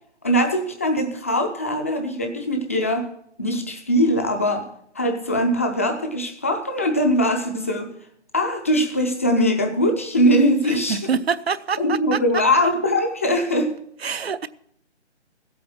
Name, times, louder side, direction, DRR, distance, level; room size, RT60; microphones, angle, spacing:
voice 1, 0.2-3.1 3.4-4.7 4.9-7.9 8.3-11.0 11.8-13.7, equal, 15° left, 5 dB, 0.6 m, -21 dB
voice 2, 10.7-12.2 14.0-14.5, right 6 dB, 60° right, 15 dB, 0.8 m, -26 dB
15.0 x 8.5 x 6.0 m, 0.70 s
figure-of-eight pair, 155°, 34 cm